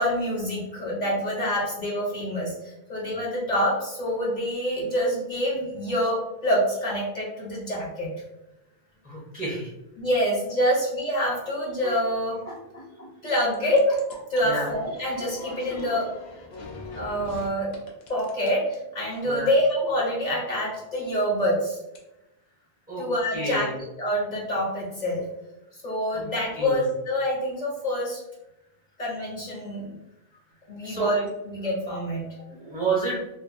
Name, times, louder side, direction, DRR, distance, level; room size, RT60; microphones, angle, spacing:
voice 1, 0.0-8.1 10.0-16.1 16.9-17.8 18.1-21.8 23.0-23.7 24.0-25.3 25.8-28.2 29.0-29.9 30.7-32.3, equal, 50° left, -5 dB, 0.7 m, -26 dB
voice 2, 9.0-9.7 14.4-14.7 19.2-19.5 22.9-23.0 23.3-23.7 26.1-26.3 26.6-26.8 30.8-31.1 32.5-33.2, right 3 dB, 10° right, -5 dB, 0.6 m, -29 dB
sound 1, 13.5-17.5 17.7-18.7 21.9-22.0, left 2 dB, 85° left, 0.9 m, -41 dB
2.6 x 2.3 x 2.4 m, 0.93 s
omnidirectional pair, 1.0 m